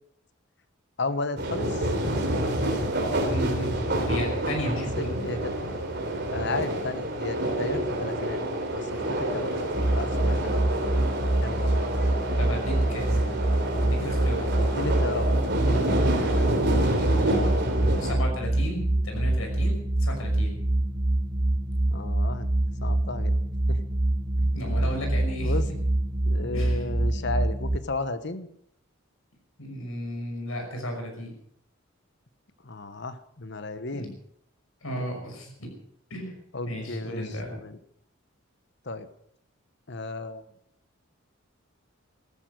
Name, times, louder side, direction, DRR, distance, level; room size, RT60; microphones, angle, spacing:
voice 1, 1.0-1.9 5.0-5.4 6.3-8.4 8.7-11.0 11.4-11.7 14.6-15.3 15.5-16.4 21.9-22.5 22.8-23.3 23.7-23.8 24.4-24.5 25.4-25.6 26.2-28.5 32.6-34.2 36.5-37.8 38.8-39.1 39.9-40.4, left 3 dB, 55° left, 12 dB, 1.2 m, -34 dB
sound 1, 1.4-18.1, right 1 dB, 55° right, 3.6 m, -28 dB
voice 2, 3.2-3.7 4.1-5.1 12.4-13.4 13.8-14.5 16.7-17.4 18.0-20.6 24.5-25.5 26.5-26.8 29.6-31.3 33.9-34.1 34.8-35.7 36.1-36.3 36.7-37.5, equal, 85° left, 3 dB, 5.9 m, -34 dB
sound 2, 9.7-27.8, right 1 dB, 25° right, 0.9 m, -25 dB
15.0 x 14.0 x 6.5 m, 0.71 s
head